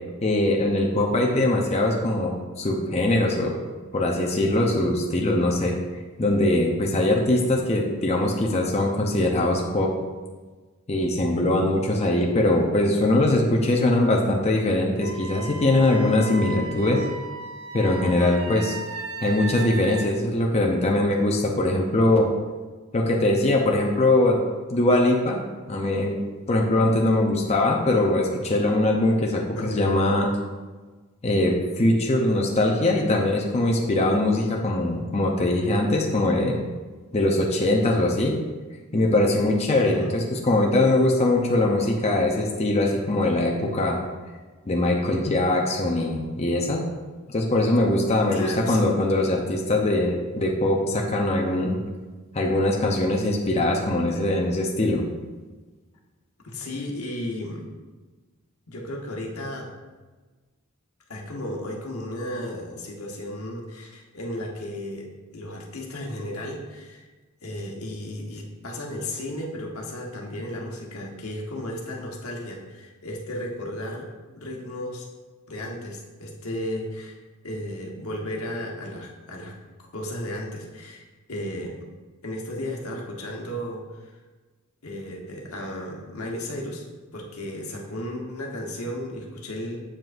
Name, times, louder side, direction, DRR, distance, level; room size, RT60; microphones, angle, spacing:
voice 1, 0.2-3.6 3.9-5.7 6.2-9.9 10.9-17.0 17.7-18.8 19.2-22.3 22.9-24.4 24.7-26.2 26.5-30.3 31.2-36.6 37.1-38.3 38.9-44.0 44.7-46.8 47.3-51.8 52.3-55.0, left 1 dB, 30° left, 0 dB, 0.7 m, -22 dB
Wind instrument woodwind instrument, 15.0-20.1, right 4 dB, 65° right, 0.5 m, -36 dB
voice 2, 29.6-30.0 39.8-40.2 47.8-48.9 56.4-57.7 58.7-59.8 61.1-65.1 65.3-67.1 67.4-74.1 74.3-75.1 75.5-77.2 77.4-81.8 82.2-84.2 84.8-86.8 87.1-89.8, left 1 dB, 80° left, 0 dB, 1.2 m, -34 dB
7.6 x 7.3 x 2.6 m, 1.3 s
head